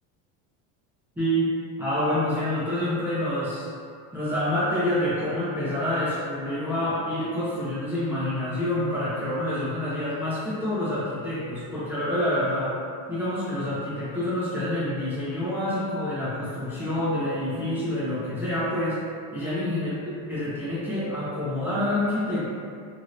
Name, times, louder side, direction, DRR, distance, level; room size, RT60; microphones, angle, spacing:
voice 1, 1.2-3.7 4.1-12.8 13.1-19.9 20.3-22.5, left 1 dB, 5° right, -11 dB, 0.5 m, -27 dB
3.1 x 2.8 x 2.5 m, 2.3 s
cardioid pair, 135°, 44 cm